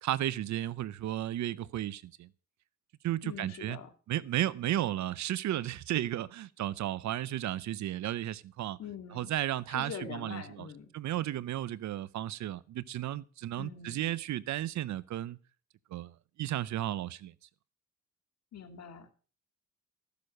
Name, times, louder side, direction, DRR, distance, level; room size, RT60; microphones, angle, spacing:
voice 1, 0.0-2.3 3.0-3.8 4.1-8.8 9.1-10.7 10.9-15.4 15.9-17.3, right 13 dB, 70° right, 0.7 m, -34 dB
voice 2, 3.2-3.9 8.8-9.3 9.7-10.9 13.6-14.1 18.5-19.1, left 7 dB, 60° left, 2.3 m, -44 dB
14.5 x 6.8 x 6.5 m
cardioid pair, 90°, 30 cm